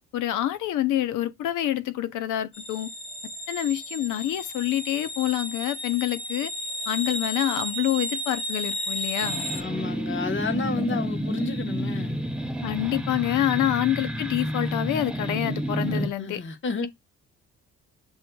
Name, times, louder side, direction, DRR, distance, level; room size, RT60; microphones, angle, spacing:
voice 1, 0.1-2.9 3.5-6.5 6.9-9.5 12.6-16.4, left 13 dB, 80° left, 0.7 m, -27 dB
sound 1, 2.5-9.6, equal, 20° left, 1.1 m, -33 dB
sound 2, 9.2-16.1, equal, 5° right, 0.6 m, -30 dB
voice 2, 9.5-12.2 13.5-13.7 15.9-16.9, left 4 dB, 40° left, 1.1 m, -31 dB
8.0 x 2.7 x 2.2 m
cardioid pair, 90°, 30 cm